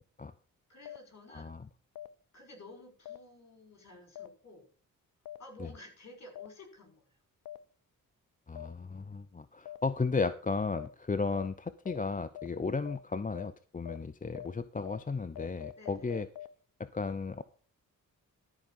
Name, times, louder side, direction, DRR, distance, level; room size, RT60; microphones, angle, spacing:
voice 1, 0.7-1.5 2.3-4.7 5.4-7.2 11.2-11.3 15.8-16.1, left 1 dB, 50° left, 4 dB, 5.8 m, -52 dB
sound 1, 0.8-1.0 1.9-2.1 3.0-3.2 4.1-4.3 5.2-5.4 6.3-6.5 7.4-7.6 8.5-8.7 9.6-9.8 10.7-10.9 11.3-11.5 11.8-12.0 12.3-12.5 12.8-13.0 13.3-13.5 13.8-14.0 14.3-14.5 14.8-15.0 15.3-16.5, left 12 dB, 80° left, 0.8 m, -43 dB
voice 2, 1.3-1.7 5.6-5.7 8.5-16.3 16.8-17.4, left 4 dB, 25° left, 13 dB, 0.7 m, -34 dB
13.0 x 5.2 x 7.5 m, 0.41 s
cardioid pair, 65°, 34 cm